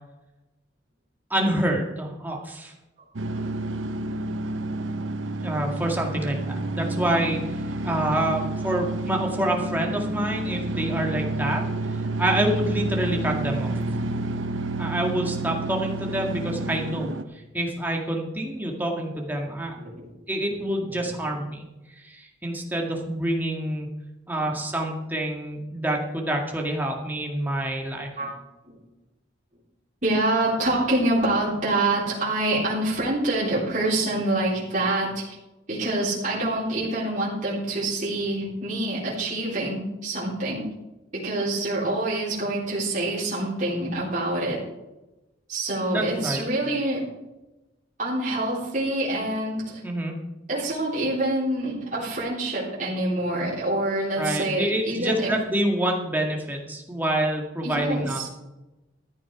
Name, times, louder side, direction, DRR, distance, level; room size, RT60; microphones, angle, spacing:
voice 1, 1.3-2.7 5.4-7.4 7.8-11.6 12.2-13.7 14.8-17.1 17.5-19.8 20.3-21.6 22.0-24.0 24.3-28.1 45.9-46.4 49.8-50.2 54.1-58.3, right 1 dB, 10° right, 0 dB, 1.9 m, -27 dB
sound 1, 3.2-17.2, right 2 dB, 85° right, 0.9 m, -30 dB
voice 2, 19.7-21.2 24.4-24.5 28.2-28.3 28.6-28.7 30.0-35.2 35.7-40.7 41.1-44.6 45.5-47.1 48.0-49.8 50.5-55.4 57.6-58.3, right 1 dB, 40° right, -7 dB, 3.6 m, -26 dB
14.0 x 9.2 x 4.7 m, 1.0 s
head